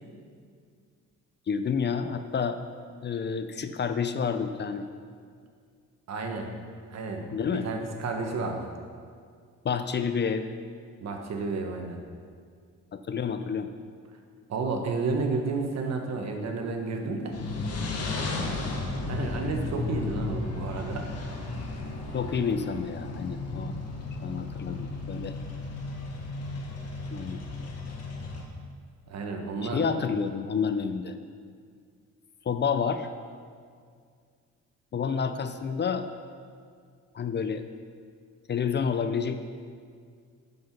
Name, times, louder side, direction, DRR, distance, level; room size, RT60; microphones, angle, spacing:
voice 1, 1.5-2.6 3.0-4.9 7.3-7.7 9.6-10.5 12.9-13.7 22.1-23.7 24.2-25.4 27.1-27.4 29.6-31.1 32.5-33.1 34.9-36.1 37.1-37.6 38.5-39.4, left 6 dB, 35° left, 9 dB, 0.5 m, -29 dB
voice 2, 6.1-6.5 6.9-8.7 11.0-12.0 14.5-17.4 19.1-21.1 29.1-29.8, right 4 dB, 60° right, 3 dB, 1.3 m, -31 dB
sound 1, 17.3-28.4, left 3 dB, 55° left, 1.4 m, -34 dB
7.6 x 5.7 x 5.9 m, 2.1 s
cardioid pair, 90°, 30 cm